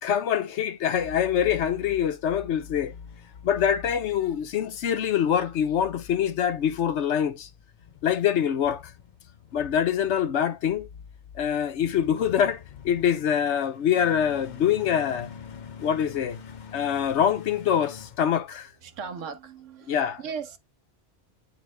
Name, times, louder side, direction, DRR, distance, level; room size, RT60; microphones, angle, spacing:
voice 1, 0.0-2.9 3.4-7.5 8.0-8.8 9.5-10.9 11.4-15.3 15.8-16.4 16.7-18.7 19.9-20.2, left 9 dB, 70° left, 1.0 m, -25 dB
sound 1, 0.8-19.0, left 7 dB, 50° left, 0.6 m, -46 dB
voice 2, 18.8-20.6, right 6 dB, 85° right, 1.3 m, -37 dB
9.1 x 3.5 x 3.2 m
omnidirectional pair, 1.2 m